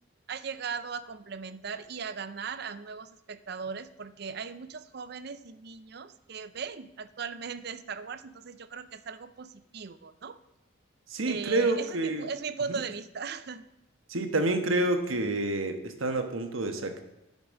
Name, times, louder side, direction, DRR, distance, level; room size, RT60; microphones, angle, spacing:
voice 1, 0.3-10.4 11.3-13.7, right 5 dB, 50° right, 14 dB, 0.5 m, -38 dB
voice 2, 11.1-12.3 12.7-12.8 14.1-17.0, right 2 dB, 80° right, 6 dB, 1.2 m, -28 dB
11.0 x 5.3 x 6.3 m, 0.95 s
head